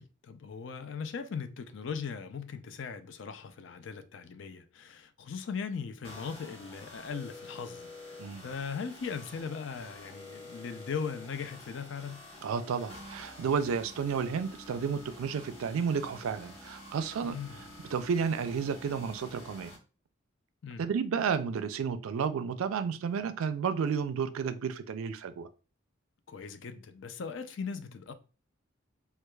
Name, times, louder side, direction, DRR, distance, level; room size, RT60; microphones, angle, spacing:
voice 1, 0.0-8.2 8.4-12.2 17.2-17.7 20.6-20.9 26.3-28.1, left 6 dB, 65° left, 0.4 m, -39 dB
sound 1, 6.0-19.8, left 2 dB, 30° left, 1.1 m, -49 dB
voice 2, 12.4-17.4 17.9-19.8 20.8-25.5, right 6 dB, 85° right, 0.4 m, -32 dB
4.5 x 2.3 x 2.2 m
head